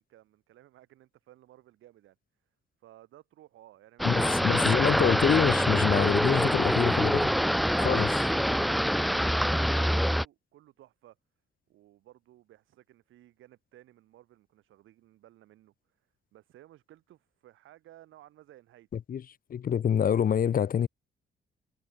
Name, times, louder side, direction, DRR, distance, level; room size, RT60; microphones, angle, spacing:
voice 1, 0.0-2.2 2.8-4.4 9.0-11.2 11.7-15.7 16.3-19.0, right 14 dB, 85° right, 5.6 m, -56 dB
voice 2, 4.0-7.3 7.8-8.3 19.1-19.2 19.5-20.9, left 8 dB, 45° left, 0.8 m, -26 dB
sound 1, 4.0-10.2, equal, ahead, 0.5 m, -25 dB
cardioid pair, 90°, 20 cm